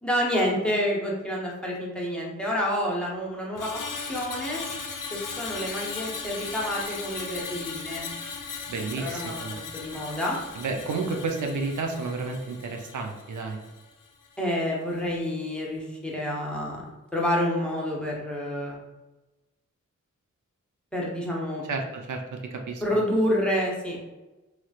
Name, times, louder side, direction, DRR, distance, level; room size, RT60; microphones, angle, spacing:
voice 1, 0.0-4.6 5.1-8.1 9.0-10.4 14.4-18.8 20.9-21.6 22.8-24.0, equal, 5° left, -4 dB, 0.7 m, -28 dB
Screech, 3.6-13.9 14.2-14.5, left 5 dB, 90° left, 0.5 m, -37 dB
voice 2, 8.7-9.6 10.6-13.6 21.6-22.8, right 3 dB, 75° right, 3 dB, 0.5 m, -31 dB
3.1 x 3.0 x 2.3 m, 1.1 s
wide cardioid pair, 110°, 31 cm